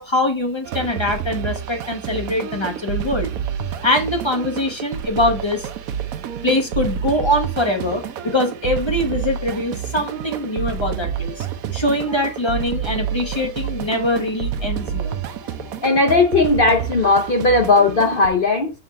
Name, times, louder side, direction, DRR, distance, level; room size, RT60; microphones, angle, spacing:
voice 1, 0.0-3.3 3.8-5.7 6.4-11.5 11.7-15.2, left 1 dB, 20° left, 1.0 m, -23 dB
sound 1, 0.6-18.3, right 8 dB, 65° right, 1.0 m, -28 dB
voice 2, 15.8-18.7, left 3 dB, 50° left, 0.6 m, -16 dB
6.8 x 3.8 x 4.1 m
omnidirectional pair, 1.8 m